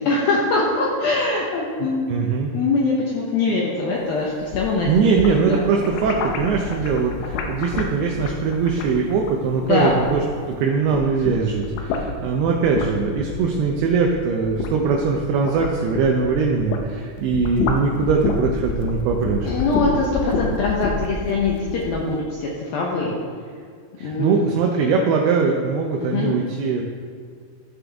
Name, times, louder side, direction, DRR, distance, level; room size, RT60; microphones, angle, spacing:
voice 1, 0.0-2.1 2.5-4.9 5.3-5.6 9.6-10.0 19.5-23.2 24.0-24.4 26.0-26.4, left 3 dB, 75° left, -3 dB, 2.3 m, -22 dB
voice 2, 1.8-2.5 4.9-10.2 10.5-19.6 24.0-26.8, right 5 dB, 80° right, 1 dB, 2.3 m, -21 dB
sound 1, 4.3-10.5 10.8-16.9 17.2-22.0, left 4 dB, 90° left, 3.4 m, -28 dB
14.0 x 7.5 x 3.5 m, 2.1 s
omnidirectional pair, 5.4 m